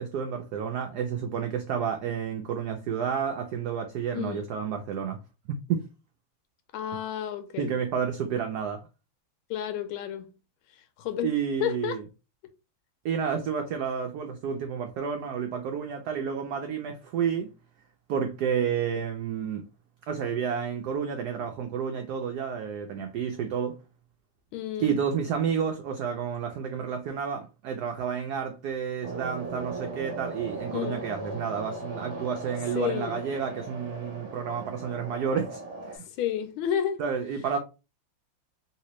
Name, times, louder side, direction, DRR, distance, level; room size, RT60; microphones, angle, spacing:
voice 1, 0.0-5.2 5.7-5.9 7.6-8.8 11.2-12.0 13.0-17.5 18.1-19.7 20.1-23.8 24.8-36.1 37.0-37.6, right 7 dB, 85° right, 0.8 m, -30 dB
voice 2, 6.7-7.8 9.5-10.3 11.0-11.3 11.6-12.0 24.5-25.0 30.7-31.0 32.7-33.2 36.2-37.0, left 10 dB, 85° left, 1.4 m, -31 dB
sound 1, 29.0-36.0, right 2 dB, 55° right, 0.8 m, -38 dB
3.3 x 2.8 x 3.0 m
omnidirectional pair, 2.3 m